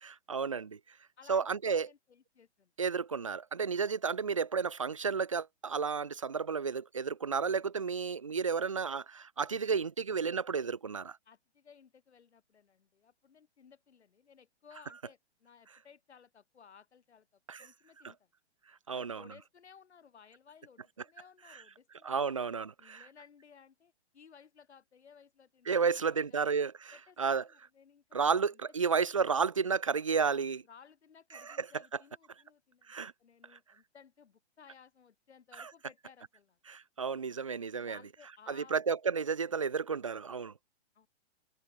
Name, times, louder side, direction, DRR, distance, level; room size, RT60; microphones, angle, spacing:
voice 1, 0.0-0.8 1.3-1.9 2.8-11.2 17.5-17.7 18.9-19.2 22.0-23.1 25.7-26.9 27.2-27.4 28.1-30.6 31.4-31.7 32.9-33.1 35.6-35.7 36.7-38.0 38.5-40.5, right 5 dB, 30° right, 0.5 m, -32 dB
voice 2, 1.2-2.7 11.3-18.3 18.9-22.1 22.5-26.4 26.9-28.6 30.2-36.6 37.7-38.8 40.9-41.1, left 7 dB, 75° left, 5.4 m, -59 dB
hypercardioid pair, 180°, 33 cm